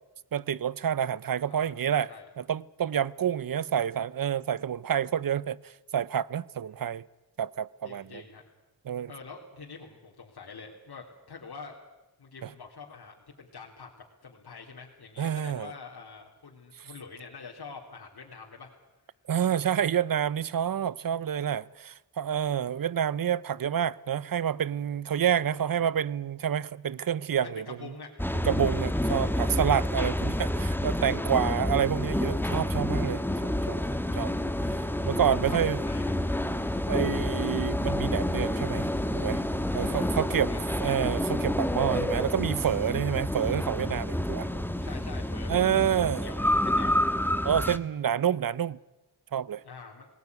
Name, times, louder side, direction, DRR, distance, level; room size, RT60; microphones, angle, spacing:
voice 1, 0.3-2.1 2.4-7.1 7.4-8.2 8.9-9.1 12.4-12.5 15.2-15.7 19.3-27.6 28.4-33.8 34.1-34.3 35.0-35.8 36.9-39.4 39.7-40.5 40.8-44.5 45.5-46.3 47.4-48.8 49.3-49.6, right 9 dB, 55° right, 0.8 m, -28 dB
voice 2, 1.5-2.3 7.8-8.4 9.1-11.7 12.2-13.9 14.2-18.7 25.5-25.9 27.4-28.1 28.4-29.5 31.3-31.7 34.7-36.1 39.7-41.0 44.2-47.0 49.6-50.1, left 5 dB, 70° left, 3.5 m, -46 dB
sound 1, 28.2-47.8, left 1 dB, 5° left, 1.6 m, -29 dB
19.0 x 18.5 x 9.6 m
cardioid pair, 50°, 40 cm